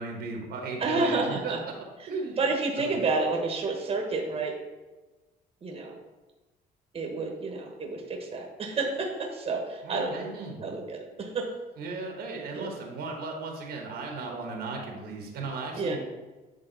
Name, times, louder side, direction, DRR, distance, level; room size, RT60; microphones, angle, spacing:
voice 1, 0.0-1.6 2.1-2.4 2.8-2.9 9.8-10.6 11.8-16.0, right 3 dB, 70° right, 2 dB, 1.3 m, -36 dB
voice 2, 0.8-1.6 2.0-2.1 2.4-4.5 5.6-5.9 6.9-10.2 10.6-11.5 12.5-12.7 15.7-16.0, right 3 dB, 35° right, 1 dB, 1.2 m, -30 dB
8.1 x 3.5 x 4.0 m, 1.2 s
cardioid pair, 110°, 17 cm